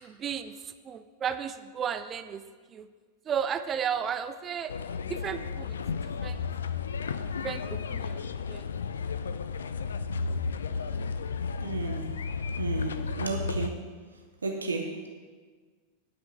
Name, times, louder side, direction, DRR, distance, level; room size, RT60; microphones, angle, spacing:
voice 1, 0.0-2.4 2.7-2.9 3.3-4.7 5.1-5.8 6.2-6.4 7.4-8.2 8.5-8.7, right 8 dB, 25° right, 10 dB, 0.6 m, -33 dB
sound 1, 4.7-13.7, left 5 dB, 70° left, 0.5 m, -33 dB
voice 2, 11.6-12.1 12.6-13.8 14.4-15.1, right 3 dB, 75° right, 3 dB, 1.0 m, -33 dB
10.0 x 6.1 x 7.5 m, 1.5 s
figure-of-eight pair, 90°, 0 cm